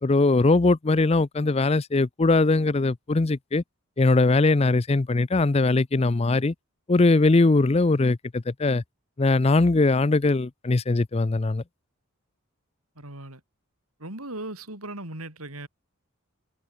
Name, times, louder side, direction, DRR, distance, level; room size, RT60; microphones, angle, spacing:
voice 1, 0.0-3.6 4.0-6.5 6.9-8.8 9.2-11.6, left 3 dB, 30° left, 0.5 m, -21 dB
voice 2, 13.0-13.4 14.0-15.7, right 2 dB, 85° right, 7.4 m, -37 dB
head